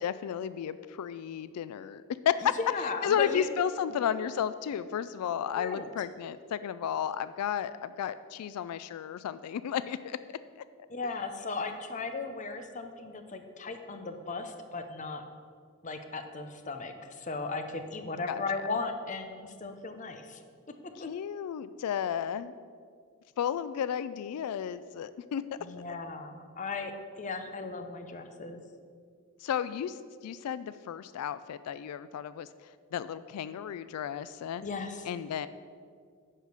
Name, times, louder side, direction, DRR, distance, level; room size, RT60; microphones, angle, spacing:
voice 1, 0.0-2.5 2.8-10.2 18.3-18.4 21.0-22.6 23.4-25.4 29.4-32.5 32.9-34.6 35.0-35.5, left 9 dB, 90° left, 15 dB, 0.3 m, -33 dB
voice 2, 2.6-3.5 5.6-5.9 10.9-15.2 15.8-20.4 21.0-21.1 25.6-28.6 34.6-35.1, left 3 dB, 35° left, 6 dB, 0.7 m, -36 dB
9.9 x 4.9 x 6.6 m, 2.1 s
head